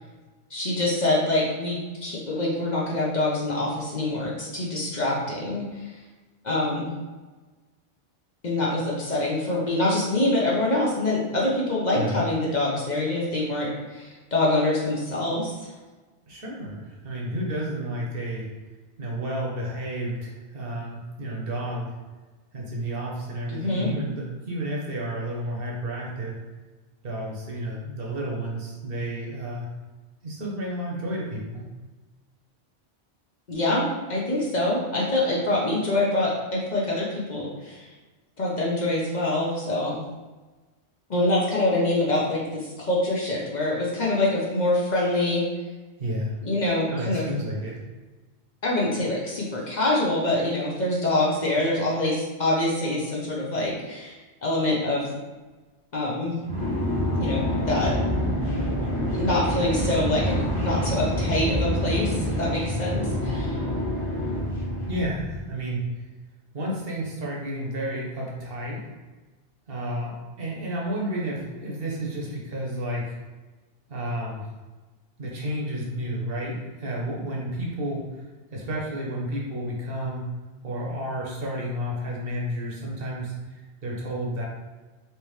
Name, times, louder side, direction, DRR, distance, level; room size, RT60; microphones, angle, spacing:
voice 1, 0.5-5.9 6.4-6.9 8.4-15.5 23.5-23.9 33.5-33.8 34.1-37.9 38.4-40.0 41.1-45.4 46.4-47.3 48.6-55.1 55.9-56.4 57.1-57.9 59.1-63.6, left 2 dB, 45° left, -5 dB, 0.8 m, -25 dB
voice 2, 11.9-12.2 16.3-18.5 19.0-21.9 22.5-26.4 27.0-29.7 30.2-31.7 46.0-46.4 46.9-47.8 64.9-66.0 66.5-68.8 69.7-73.1 73.9-74.4 75.2-78.3 78.5-80.2 80.6-84.4, right 1 dB, 60° right, -3 dB, 1.0 m, -31 dB
sound 1, 56.4-65.4, equal, 20° left, 1.2 m, -27 dB
3.4 x 2.9 x 3.1 m, 1.3 s
omnidirectional pair, 1.1 m